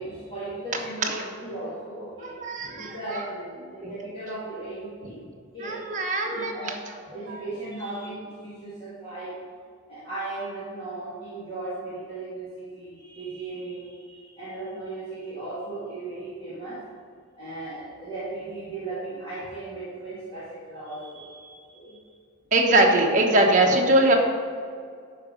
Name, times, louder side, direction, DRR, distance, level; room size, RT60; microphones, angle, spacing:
voice 1, 0.0-2.4 2.8-5.2 5.5-5.9 6.2-6.7 7.1-9.3 9.9-16.8 17.3-22.1, right 2 dB, 25° left, -12 dB, 2.4 m, -36 dB
voice 2, 2.2-3.2 3.8-3.9 5.6-6.7 22.5-24.1, right 2 dB, 35° right, 0 dB, 1.2 m, -21 dB
11.5 x 4.8 x 5.2 m, 2.2 s
head